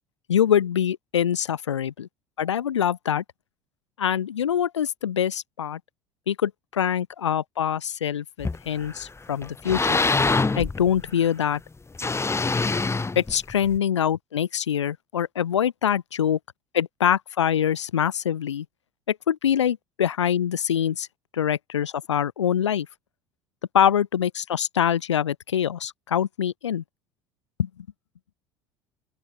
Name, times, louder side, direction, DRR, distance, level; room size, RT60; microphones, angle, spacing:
voice 1, 0.3-2.1 2.4-3.2 4.0-5.8 6.3-10.0 10.6-11.6 13.2-16.4 16.7-18.7 19.1-21.1 21.3-22.9 23.7-26.8 27.6-27.7, left 9 dB, 85° left, 4.2 m, -24 dB
sound 1, 8.4-9.0 9.4-11.3 11.9-13.8, left 3 dB, 20° left, 6.5 m, -24 dB
open air
hypercardioid pair, 70°, 15 cm